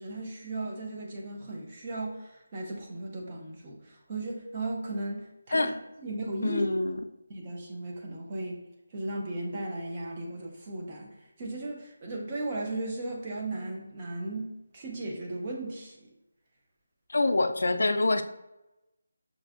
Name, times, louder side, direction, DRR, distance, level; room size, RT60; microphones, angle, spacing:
voice 1, 0.0-6.7 7.3-8.6 8.9-11.1 11.4-16.0, right 2 dB, 20° right, -1 dB, 0.6 m, -36 dB
voice 2, 6.4-7.0 17.1-18.2, left 2 dB, 70° left, 8 dB, 0.3 m, -25 dB
5.9 x 2.5 x 2.4 m, 0.97 s
figure-of-eight pair, 180°, 0 cm